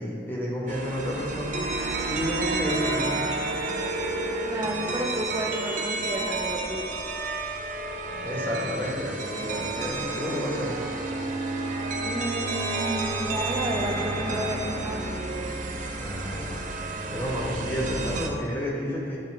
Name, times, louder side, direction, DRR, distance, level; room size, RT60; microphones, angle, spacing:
voice 1, 0.0-1.6 2.0-3.2 8.2-10.9 15.9-16.6 17.1-19.2, equal, 10° left, -6 dB, 1.4 m, -31 dB
sound 1, 0.7-18.3, right 2 dB, 45° right, 0.6 m, -30 dB
voice 2, 4.4-6.9 12.0-15.1, right 1 dB, 20° right, -1 dB, 0.9 m, -31 dB
10.0 x 3.5 x 4.8 m, 2.2 s
head